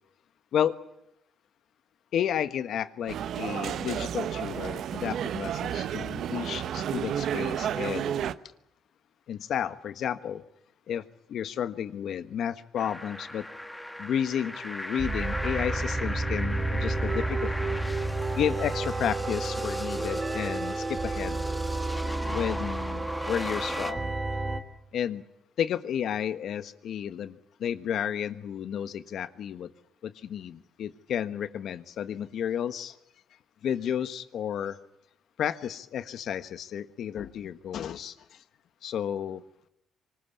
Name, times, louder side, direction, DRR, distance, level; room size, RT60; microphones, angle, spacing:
voice 1, 2.1-8.2 9.3-10.4 10.9-11.0 11.3-13.5 14.0-17.8 18.3-21.4 22.2-24.1 24.9-25.2 25.6-29.7 30.0-32.9 33.6-34.8 35.4-38.4 38.8-39.4, left 9 dB, 70° left, 1.3 m, -32 dB
sound 1, 3.1-8.3, right 9 dB, 70° right, 1.0 m, -31 dB
sound 2, 12.8-23.9, left 1 dB, 5° left, 1.7 m, -38 dB
sound 3, 15.0-24.6, right 2 dB, 30° right, 2.6 m, -31 dB
25.0 x 19.5 x 8.5 m
cardioid pair, 90°, 0 cm